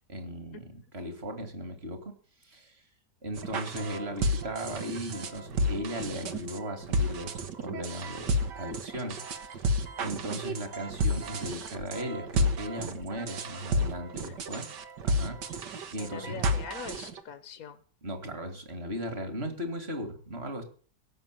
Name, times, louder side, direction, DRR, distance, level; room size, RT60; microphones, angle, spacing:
voice 1, 0.1-2.2 2.4-2.8 3.2-9.7 10.0-14.7 15.0-16.4 18.0-20.6, equal, 35° right, 7 dB, 2.7 m, -37 dB
sound 1, 3.4-17.2, equal, 75° right, 2.0 m, -31 dB
voice 2, 16.0-17.8, left 7 dB, 55° left, 11 dB, 1.4 m, -42 dB
16.5 x 7.3 x 9.2 m, 0.44 s
omnidirectional pair, 1.9 m